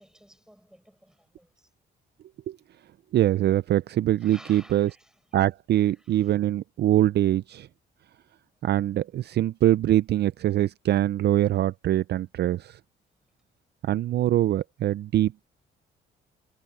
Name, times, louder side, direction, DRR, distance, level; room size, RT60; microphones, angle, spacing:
voice 1, 0.0-1.7 4.1-5.4 5.7-6.4, equal, 5° right, 6.8 m, -54 dB
voice 2, 3.1-4.9 5.3-7.7 8.6-12.8 13.8-15.5, right 13 dB, 60° right, 0.4 m, -23 dB
cardioid pair, 90°, 20 cm